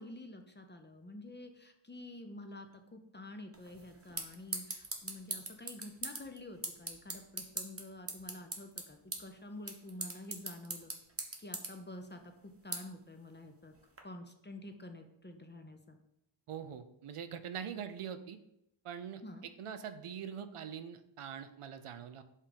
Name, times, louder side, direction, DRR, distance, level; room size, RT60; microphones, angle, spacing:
voice 1, 0.0-10.9 11.4-13.7 14.0-16.0 19.2-19.5, left 1 dB, 20° left, 5 dB, 0.6 m, -49 dB
sound 1, 3.5-14.0, right 3 dB, 25° right, 0.9 m, -44 dB
voice 2, 16.5-18.4 18.8-22.2, right 8 dB, 85° right, 10 dB, 0.6 m, -43 dB
5.5 x 3.6 x 5.1 m, 0.78 s
wide cardioid pair, 105°, 49 cm